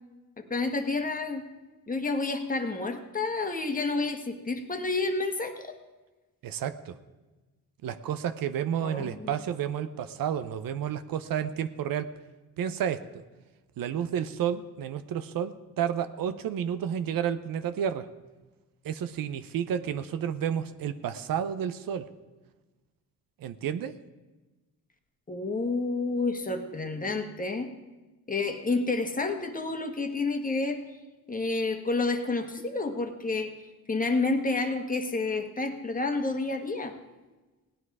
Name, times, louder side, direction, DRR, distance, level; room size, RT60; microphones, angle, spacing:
voice 1, 0.4-1.5 1.9-5.8 8.8-9.3 25.3-27.7 28.3-30.8 31.3-33.5 33.9-36.9, left 3 dB, 25° left, 5 dB, 1.4 m, -29 dB
voice 2, 6.4-7.0 7.8-12.1 12.6-13.2 13.8-18.1 18.8-22.1 23.4-23.9, right 9 dB, 75° right, 12 dB, 0.8 m, -31 dB
17.0 x 9.9 x 4.8 m, 1.2 s
cardioid pair, 90°, 35 cm